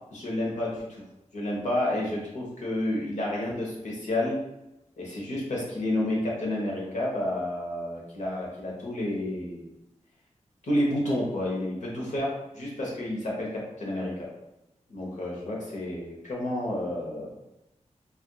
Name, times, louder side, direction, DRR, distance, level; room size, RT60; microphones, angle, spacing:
voice 1, 0.1-1.0 1.3-4.4 5.0-9.6 10.6-14.1 14.9-17.3, left 1 dB, 75° left, -3 dB, 1.1 m, -30 dB
4.2 x 2.5 x 2.3 m, 0.91 s
wide cardioid pair, 105°, 12 cm